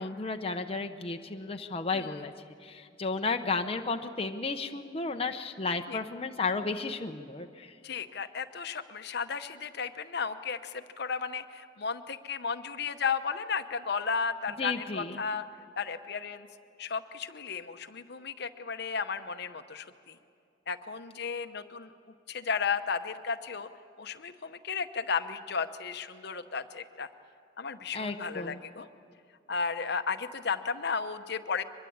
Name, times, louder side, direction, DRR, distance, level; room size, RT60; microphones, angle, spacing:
voice 1, 0.0-2.3 2.6-7.7 14.6-15.2 27.9-28.6, left 4 dB, 30° left, 5 dB, 0.8 m, -33 dB
voice 2, 1.9-2.2 5.9-6.0 7.8-15.4 15.8-16.5 16.8-20.2 20.7-21.9 22.3-23.7 24.0-27.1 27.6-28.9 29.5-31.6, left 5 dB, 60° left, 9 dB, 0.9 m, -34 dB
24.0 x 21.5 x 8.7 m, 2.4 s
head